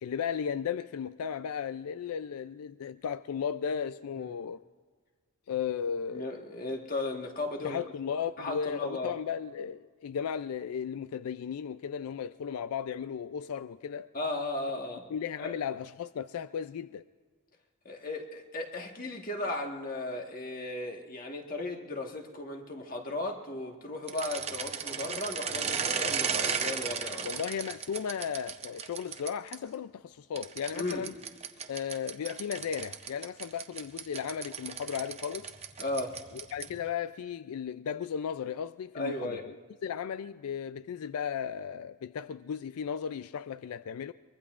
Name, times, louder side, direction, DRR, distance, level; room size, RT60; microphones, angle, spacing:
voice 1, 0.0-4.6 5.5-6.3 7.6-14.1 15.1-17.0 27.2-31.1 31.7-35.5 36.5-39.5 39.8-44.1, left 7 dB, 85° left, 0.4 m, -35 dB
voice 2, 6.1-7.8 8.4-9.2 14.1-15.1 15.4-15.6 17.8-27.3 30.7-31.1 35.8-36.2 38.9-39.4, left 2 dB, 40° left, 1.5 m, -36 dB
sound 1, 24.0-29.6 30.4-36.8, right 6 dB, 30° right, 0.7 m, -35 dB
23.5 x 22.0 x 2.5 m
head